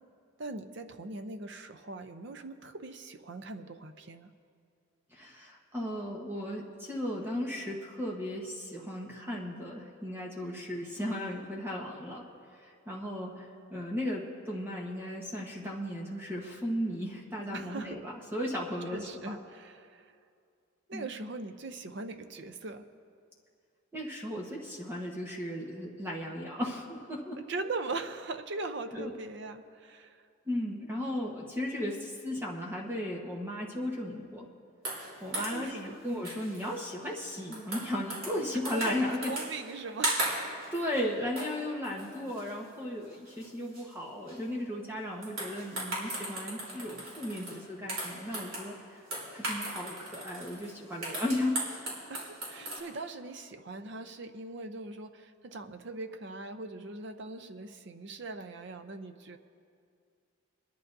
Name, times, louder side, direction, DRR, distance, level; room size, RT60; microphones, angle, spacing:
voice 1, 0.4-4.3 17.5-18.0 18.9-20.1 20.9-22.9 27.4-30.2 35.3-36.0 38.7-39.0 39.3-40.2 52.1-59.4, right 3 dB, 55° right, 9 dB, 0.6 m, -40 dB
voice 2, 5.1-12.2 12.6-19.0 19.3-19.4 20.9-21.1 23.9-27.4 28.9-29.1 30.5-34.5 35.2-39.3 40.7-48.7 49.3-51.6 52.6-52.8, left 1 dB, 10° right, -2 dB, 1.1 m, -35 dB
sound 1, 34.8-35.8 36.3-36.8 37.0-38.4 38.7-39.8 40.0-41.0 41.4-41.6 41.8-42.7 43.1-43.5 43.7-43.9 44.3-44.4 45.2-47.6 47.9-48.7 49.1-52.8, right 1 dB, 80° right, 3.4 m, -37 dB
23.0 x 11.0 x 2.6 m, 2.4 s
head